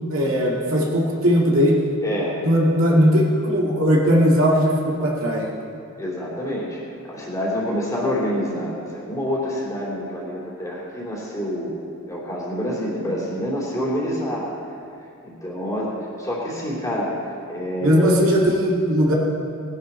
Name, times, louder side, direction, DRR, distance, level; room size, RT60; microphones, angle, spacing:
voice 1, 0.1-1.8 2.4-5.5 17.8-19.1, equal, 65° right, -3 dB, 2.1 m, -18 dB
voice 2, 2.0-2.4 6.0-6.8 7.0-11.7 12.1-14.5 15.2-17.1 17.5-18.3, equal, 15° left, -6 dB, 3.2 m, -27 dB
19.0 x 11.0 x 4.4 m, 2.5 s
head